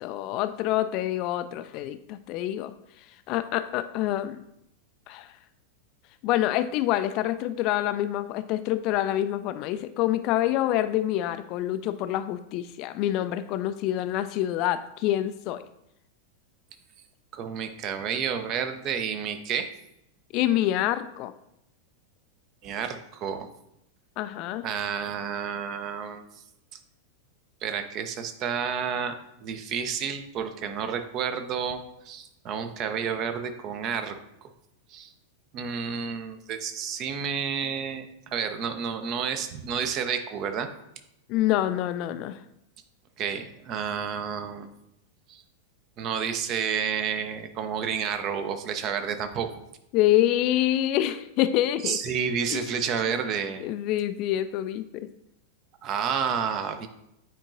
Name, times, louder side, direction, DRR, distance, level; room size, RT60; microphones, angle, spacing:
voice 1, 0.0-2.7 3.3-4.4 5.1-5.3 6.2-15.6 20.3-21.3 24.2-24.6 41.3-42.4 49.9-52.0 52.5-52.6 53.0-53.1 53.6-55.1, left 13 dB, 40° left, 11 dB, 0.3 m, -26 dB
voice 2, 17.3-19.7 22.6-23.5 24.6-26.2 27.6-31.8 32.0-34.5 34.9-35.1 35.5-40.7 43.2-44.7 45.3-45.4 46.0-49.5 51.8-53.6 55.8-56.9, right 7 dB, 35° right, 8 dB, 0.7 m, -30 dB
8.8 x 4.5 x 2.6 m, 0.80 s
figure-of-eight pair, 90°, 0 cm